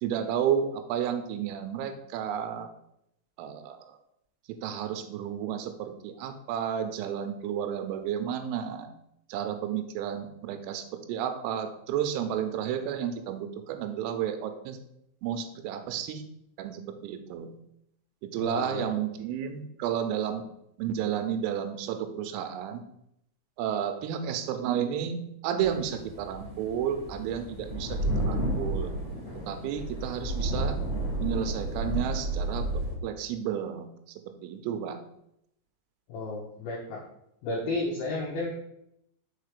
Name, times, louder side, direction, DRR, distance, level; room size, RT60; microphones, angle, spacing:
voice 1, 0.0-2.7 3.4-3.8 4.5-8.9 9.3-14.8 15.2-16.2 16.6-17.5 18.2-20.4 20.8-22.8 23.6-28.0 28.2-28.9 29.5-30.8 31.2-32.7 33.0-33.9 34.4-35.0, right 9 dB, 85° right, 8 dB, 3.3 m, -32 dB
voice 2, 18.4-19.0 36.1-37.0 37.4-38.5, left 2 dB, 80° left, -3 dB, 2.1 m, -33 dB
sound 1, 25.6-32.9, right 1 dB, 20° left, 2.1 m, -32 dB
6.6 x 4.7 x 5.0 m, 0.78 s
omnidirectional pair, 5.9 m